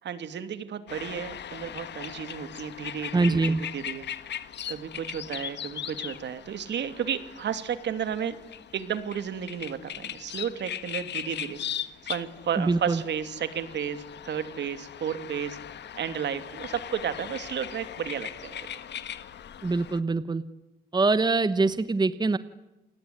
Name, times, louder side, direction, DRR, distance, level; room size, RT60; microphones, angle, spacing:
voice 1, 0.0-4.1 4.7-8.4 8.7-11.6 12.0-15.6 16.0-18.7, right 8 dB, 65° right, 10 dB, 2.9 m, -33 dB
sound 1, 0.9-20.0, left 9 dB, 60° left, 1.7 m, -39 dB
voice 2, 3.1-3.6 12.6-13.0 19.6-20.4 20.9-22.4, right 3 dB, 20° right, 13 dB, 1.2 m, -24 dB
29.0 x 20.0 x 9.9 m, 1.0 s
cardioid pair, 90°, 20 cm